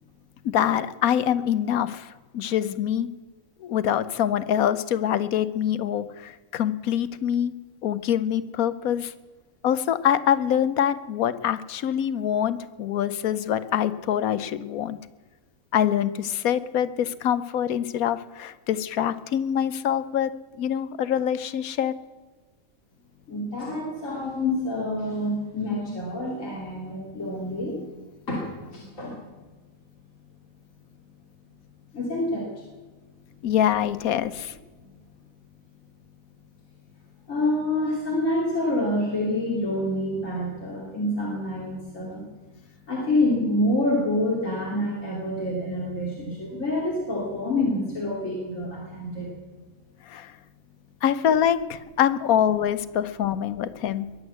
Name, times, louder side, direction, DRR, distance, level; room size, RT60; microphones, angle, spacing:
voice 1, 0.4-2.1 2.3-3.1 3.6-7.5 7.8-9.1 9.6-15.0 15.7-20.3 20.6-21.9 33.4-34.5 50.1-50.3 51.0-54.1, left 10 dB, 90° left, 14 dB, 1.2 m, -25 dB
voice 2, 23.3-27.8 28.3-29.2 31.9-32.6 34.8-34.9 37.3-42.2 42.6-49.3, left 1 dB, 65° left, -4 dB, 3.5 m, -27 dB
21.5 x 8.1 x 8.1 m, 1.3 s
omnidirectional pair, 1.5 m